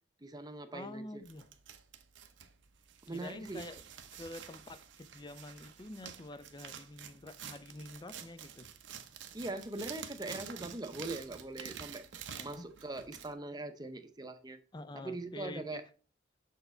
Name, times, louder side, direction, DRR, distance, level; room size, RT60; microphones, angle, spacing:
voice 1, 0.2-1.2 3.1-3.6 9.3-12.1 12.4-14.6 14.9-15.8, right 2 dB, 20° right, 0.7 m, -41 dB
voice 2, 0.7-1.5 3.1-3.8 4.1-8.7 12.3-12.6 14.7-15.8, left 2 dB, 25° left, 0.5 m, -47 dB
sound 1, 1.2-13.3, right 8 dB, 80° right, 0.7 m, -49 dB
6.8 x 4.6 x 4.3 m
head